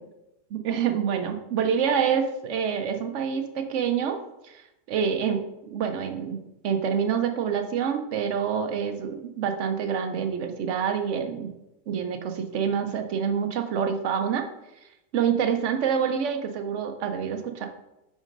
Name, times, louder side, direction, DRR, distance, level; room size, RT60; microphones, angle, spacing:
voice 1, 0.5-4.2 4.4-4.6 4.9-6.4 6.6-11.5 11.9-14.5 15.1-17.7, right 7 dB, 65° right, 6 dB, 0.9 m, -27 dB
5.1 x 3.7 x 5.1 m, 0.92 s
omnidirectional pair, 1.4 m